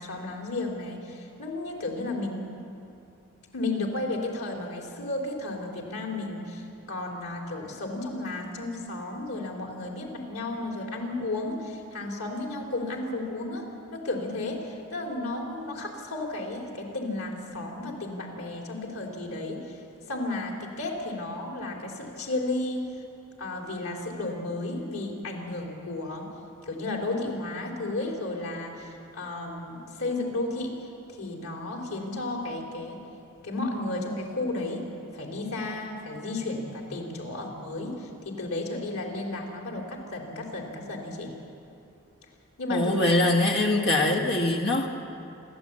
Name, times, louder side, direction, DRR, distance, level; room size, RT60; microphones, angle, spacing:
voice 1, 0.0-2.4 3.5-13.6 13.9-19.6 20.1-22.8 23.4-26.2 26.7-30.7 31.2-33.0 33.4-34.8 35.1-37.9 38.2-41.3 42.6-42.9, left 2 dB, 90° left, 0 dB, 3.9 m, -33 dB
voice 2, 42.7-44.9, left 2 dB, 50° left, 2 dB, 1.6 m, -23 dB
27.5 x 12.5 x 8.7 m, 2.7 s
head